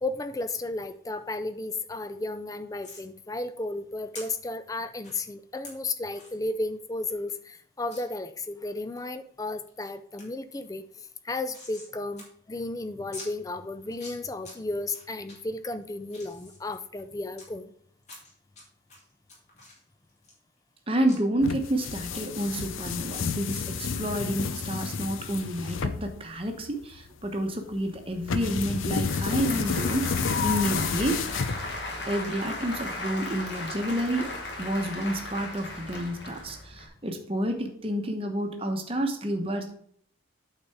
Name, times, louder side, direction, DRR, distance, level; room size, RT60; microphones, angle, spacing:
voice 1, 0.0-17.7, left 2 dB, 15° left, 11 dB, 0.4 m, -34 dB
sound 1, 2.8-3.1 4.1-4.2 5.0-5.2 5.6-5.7 6.1-6.4 6.8-6.9 7.1-7.2 7.9-8.0 8.5-9.1 9.5-9.9 10.2-10.3 10.6-11.9 12.2-12.3 12.5-12.6 13.1-13.3 13.8-14.5 14.9-15.3 15.8-17.5 18.0-18.6 18.9-20.8 21.1-21.2, left 2 dB, 35° left, 2.6 m, -46 dB
voice 2, 20.9-31.2 32.1-34.3 34.6-39.8, right 1 dB, 30° right, 5 dB, 0.9 m, -29 dB
sound 2, 21.4-32.0, left 5 dB, 85° left, 0.6 m, -31 dB
Applause / Crowd, 28.1-36.9, left 2 dB, 60° left, 1.5 m, -37 dB
8.7 x 4.1 x 4.7 m, 0.64 s
head